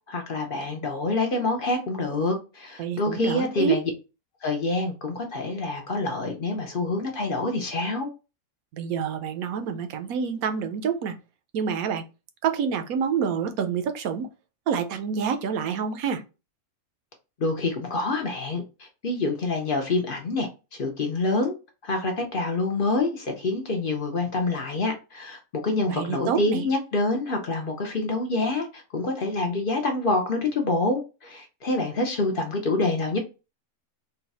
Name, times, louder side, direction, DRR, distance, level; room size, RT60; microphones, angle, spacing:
voice 1, 0.1-3.8 4.4-8.1 17.4-21.5 21.8-33.2, left 2 dB, 50° left, 0.7 m, -27 dB
voice 2, 2.8-3.8 8.7-11.2 11.5-12.0 12.4-14.3 14.7-16.2 25.9-26.7, right 7 dB, 70° right, 1.0 m, -27 dB
3.9 x 2.3 x 4.1 m
omnidirectional pair, 1.6 m